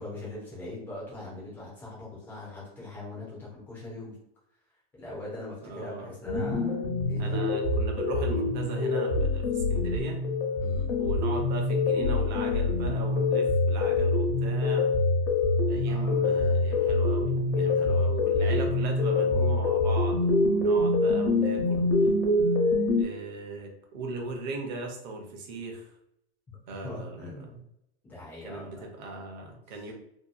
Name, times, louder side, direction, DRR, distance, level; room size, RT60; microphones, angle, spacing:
voice 1, 0.0-4.1 5.0-6.8 7.1-7.4 10.6-10.9 15.8-16.2 17.5-18.1 18.4-18.8 26.8-27.6 28.0-28.9 29.7-29.8, left 2 dB, 5° left, -7 dB, 0.4 m, -41 dB
voice 2, 5.6-6.0 7.2-10.2 11.0-14.9 15.6-22.2 23.0-25.9 26.7-27.6 28.4-29.9, right 2 dB, 40° right, 1 dB, 0.6 m, -38 dB
sound 1, 6.3-23.0, left 2 dB, 70° left, 0.9 m, -25 dB
2.8 x 2.3 x 2.3 m, 0.79 s
supercardioid pair, 165°, 33 cm